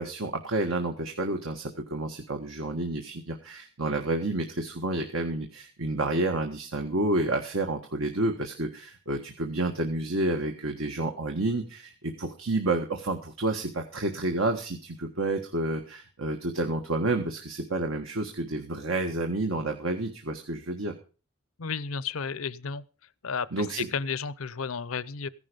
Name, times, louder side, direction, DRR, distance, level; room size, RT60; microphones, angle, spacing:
voice 1, 0.0-20.9 23.5-23.9, right 2 dB, 80° right, 1.6 m, -30 dB
voice 2, 21.6-22.8 23.2-25.3, left 5 dB, 85° left, 0.7 m, -33 dB
15.5 x 11.0 x 5.2 m
head